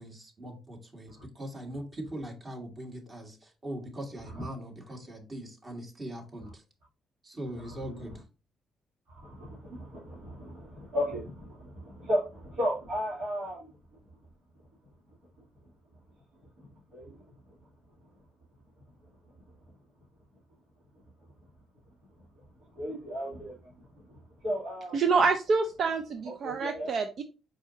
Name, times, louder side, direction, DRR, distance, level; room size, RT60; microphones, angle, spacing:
voice 1, 0.0-6.6 7.2-8.2, right 1 dB, 35° right, 1.7 m, -41 dB
voice 2, 7.6-8.1 9.1-13.7 16.6-17.2 22.7-23.7 24.4-25.2 26.2-26.9, equal, 75° right, 2.5 m, -35 dB
voice 3, 24.9-27.2, right 4 dB, 60° right, 0.5 m, -27 dB
4.7 x 4.1 x 2.7 m
supercardioid pair, 60°, 0 cm